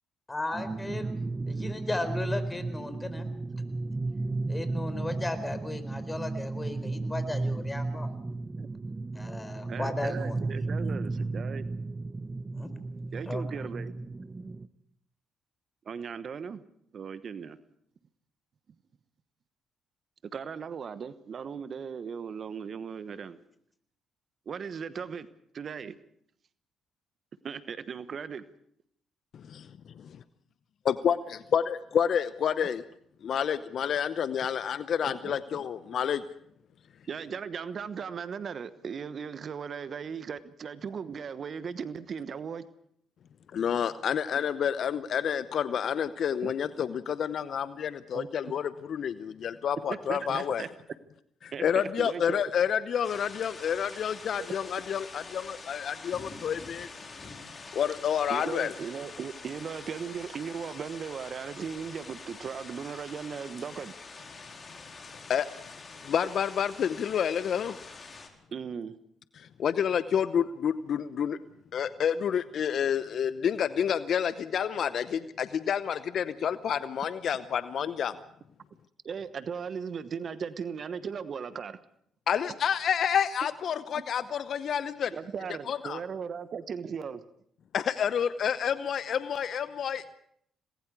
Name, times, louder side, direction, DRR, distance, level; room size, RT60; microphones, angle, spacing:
voice 1, 0.3-1.1 1.5-3.3 4.5-8.1 9.1-10.4 10.8-11.1 12.5-12.7 13.3-13.4, left 2 dB, 20° left, 4.2 m, -35 dB
sound 1, 0.5-14.7, right 3 dB, 25° right, 1.0 m, -34 dB
voice 2, 9.7-11.6 13.1-13.9 15.8-16.6 16.9-17.6 20.3-23.4 24.5-25.3 25.5-26.0 27.4-28.4 35.1-35.4 37.1-42.6 46.4-46.5 48.1-48.3 49.9-50.7 51.5-52.4 54.4-54.5 58.3-63.9 68.5-69.0 79.0-81.8 82.5-82.6 83.9-84.0 85.1-87.3, right 6 dB, 55° right, 1.1 m, -37 dB
voice 3, 29.3-29.7 30.9-32.8 33.2-36.2 43.5-50.7 51.4-56.9 57.7-58.7 65.3-65.5 66.0-67.8 69.4-71.4 71.7-78.2 82.3-85.1 85.7-86.0 87.7-90.2, left 8 dB, 60° left, 0.8 m, -29 dB
sound 2, 53.0-68.3, left 4 dB, 40° left, 4.1 m, -46 dB
27.0 x 20.0 x 4.8 m
hypercardioid pair, 50°, 0 cm